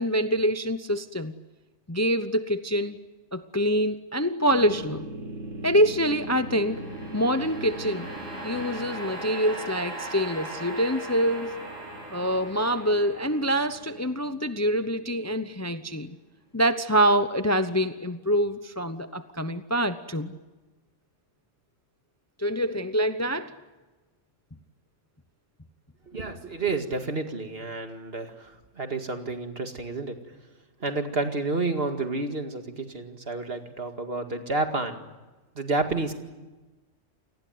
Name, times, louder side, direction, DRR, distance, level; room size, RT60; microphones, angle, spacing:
voice 1, 0.0-1.3 1.9-3.0 3.3-5.0 5.6-6.9 7.1-8.1 8.4-11.5 12.1-16.2 16.5-20.4 22.4-23.5, equal, 15° left, 10 dB, 0.8 m, -25 dB
sound 1, 4.5-15.7, right 1 dB, 80° right, 8.5 m, -38 dB
voice 2, 26.1-30.2 30.8-35.1 35.6-36.1, right 3 dB, 50° right, 6 dB, 2.3 m, -30 dB
29.0 x 19.5 x 9.4 m, 1.2 s
omnidirectional pair, 1.3 m